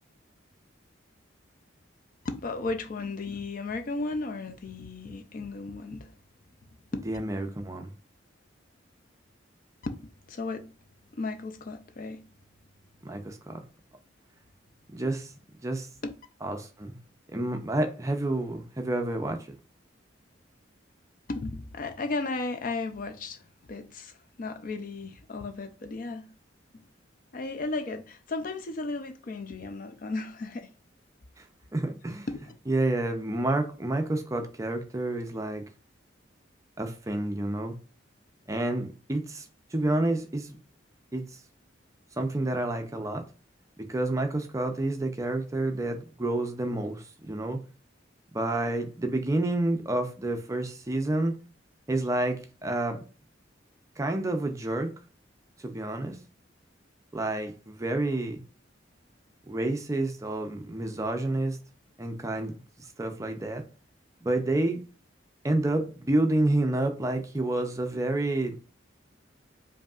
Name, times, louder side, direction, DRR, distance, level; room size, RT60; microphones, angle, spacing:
voice 1, 2.2-6.1 6.9-7.1 9.8-10.7 11.1-12.2 16.0-16.1 21.3-23.4 23.7-26.3 26.7-26.8 27.3-30.7 32.3-32.6, left 3 dB, 45° left, 0.4 m, -35 dB
voice 2, 6.9-7.9 13.0-13.6 14.9-15.3 15.6-15.9 16.4-17.0 17.3-19.5 31.4-31.5 31.7-35.6 36.8-37.7 38.5-39.5 39.7-40.6 41.1-41.2 42.2-43.2 43.8-47.6 48.3-51.3 51.9-53.0 54.0-54.9 55.6-56.2 57.1-58.4 59.5-61.6 62.0-63.6 64.2-64.8 65.4-68.6, right 2 dB, 15° right, 0.5 m, -29 dB
5.1 x 2.7 x 2.4 m
head